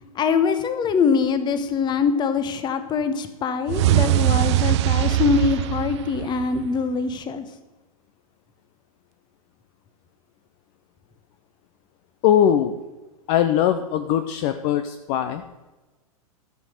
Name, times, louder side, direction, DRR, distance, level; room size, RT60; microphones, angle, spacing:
voice 1, 0.1-7.4, left 5 dB, 25° left, 11 dB, 1.1 m, -23 dB
sound 1, 3.7-6.8, right 16 dB, 50° right, 0.4 m, -21 dB
voice 2, 12.2-12.8 13.3-15.4, left 10 dB, 40° left, 8 dB, 0.7 m, -21 dB
14.0 x 6.2 x 6.5 m, 1.2 s
figure-of-eight pair, 100°, 19 cm